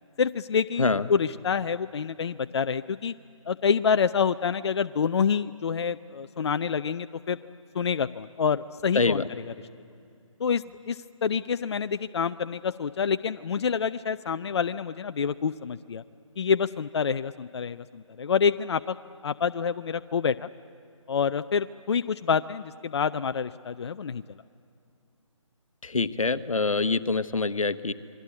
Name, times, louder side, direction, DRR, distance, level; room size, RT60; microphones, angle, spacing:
voice 1, 0.2-3.1 3.5-7.4 7.7-9.2 10.4-16.0 16.4-19.0 19.2-20.5 21.1-24.2, left 6 dB, 55° left, 12 dB, 0.5 m, -27 dB
voice 2, 8.9-9.3 25.8-27.9, left 3 dB, 90° left, 13 dB, 1.1 m, -25 dB
28.0 x 22.0 x 8.6 m, 2.6 s
figure-of-eight pair, 155°, 17 cm